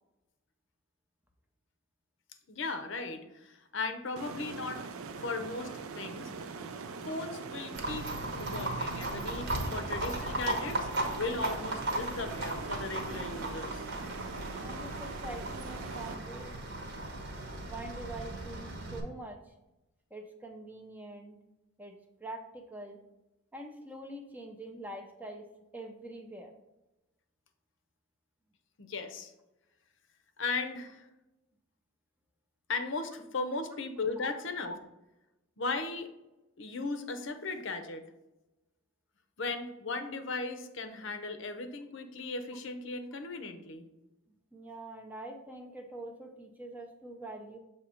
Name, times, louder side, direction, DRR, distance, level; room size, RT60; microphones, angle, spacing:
voice 1, 2.5-4.9 5.2-6.6 7.0-8.1 8.4-10.9 11.2-13.8 28.8-29.3 30.4-31.1 32.7-34.8 35.6-36.1 36.6-38.1 39.4-43.8, left 3 dB, 60° left, 8 dB, 0.6 m, -37 dB
sound 1, 4.2-16.1, right 4 dB, 80° right, 0.5 m, -43 dB
Livestock farm animals working animals, 7.7-19.0, right 1 dB, 55° right, 1.0 m, -36 dB
voice 2, 14.6-16.6 17.6-19.4 20.1-21.4 21.8-21.9 22.2-23.0 23.5-25.5 25.7-26.5 34.2-34.3 44.5-47.6, right 1 dB, 10° right, 3 dB, 0.5 m, -44 dB
6.9 x 2.9 x 5.0 m, 0.97 s
head